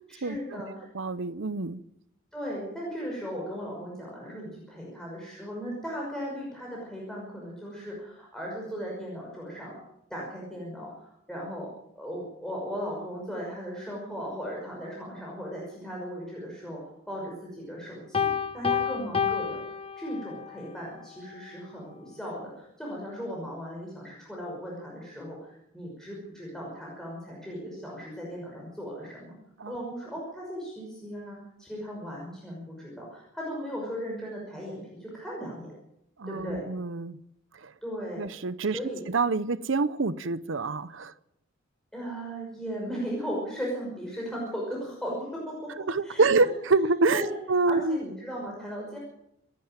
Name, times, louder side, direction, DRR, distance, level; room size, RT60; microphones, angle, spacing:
voice 1, 0.1-0.9 2.3-9.8 10.1-11.7 11.9-16.8 17.1-29.4 29.7-35.7 36.3-36.7 37.8-38.3 38.7-39.0 41.9-46.5 47.1-47.3 47.7-49.0, equal, 5° left, 5.7 m, -37 dB
voice 2, 0.9-1.8 29.6-29.8 36.2-37.2 37.6-37.7 38.2-38.8 39.1-41.1 45.9-48.0, right 3 dB, 65° right, 0.7 m, -26 dB
Piano, 18.1-20.5, left 7 dB, 30° left, 0.9 m, -29 dB
27.0 x 11.5 x 9.0 m
head